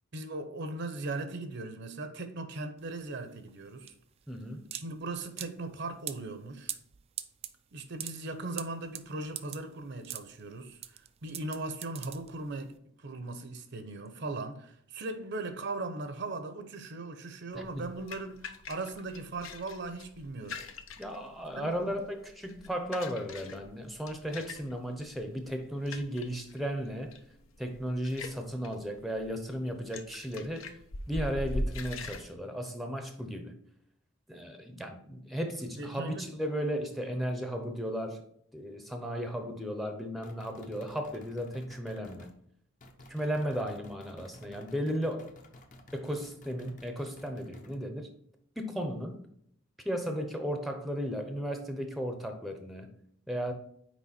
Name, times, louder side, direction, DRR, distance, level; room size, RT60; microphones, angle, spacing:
voice 1, 0.1-3.9 4.7-6.8 7.7-20.6 21.5-21.7 35.8-36.3, right 2 dB, 55° right, 0.7 m, -39 dB
sound 1, 2.8-12.7, right 11 dB, 30° right, 0.3 m, -43 dB
voice 2, 4.3-4.7 17.5-17.8 21.0-27.2 27.6-30.8 31.1-33.5 34.3-38.2 38.5-42.3 43.1-45.3 45.9-48.1 48.6-49.2 49.8-52.9 53.3-53.5, equal, ahead, 0.7 m, -35 dB
sound 2, 17.5-32.2, left 2 dB, 75° left, 0.8 m, -42 dB
sound 3, 40.2-42.4 42.8-47.8, left 1 dB, 40° left, 0.8 m, -54 dB
6.2 x 4.7 x 4.2 m
head